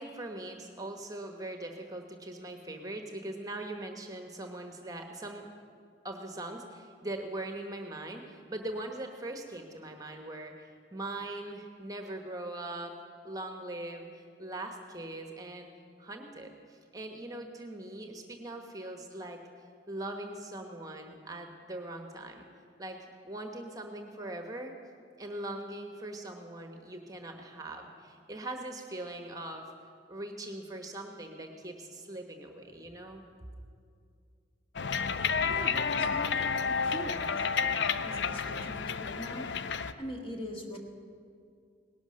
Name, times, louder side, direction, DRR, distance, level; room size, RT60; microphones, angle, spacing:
voice 1, 0.0-5.4 6.0-12.9 13.2-15.7 16.0-19.4 19.9-22.4 22.8-24.7 25.2-29.6 30.1-33.2, right 1 dB, 20° right, 5 dB, 1.1 m, -41 dB
sound 1, 34.7-39.9, left 6 dB, 75° left, 0.6 m, -30 dB
voice 2, 35.5-37.5 38.0-39.5 40.0-40.8, equal, 30° left, 2 dB, 1.7 m, -42 dB
18.5 x 11.5 x 6.4 m, 2.3 s
head